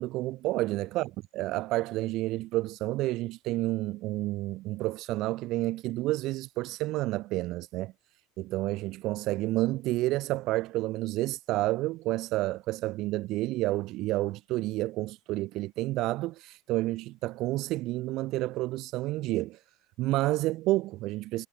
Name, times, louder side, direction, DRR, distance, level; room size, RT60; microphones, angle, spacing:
voice 1, 0.0-7.9 8.4-19.6 20.0-21.5, right 18 dB, 50° right, 1.9 m, -30 dB
supercardioid pair, 145°, 0 cm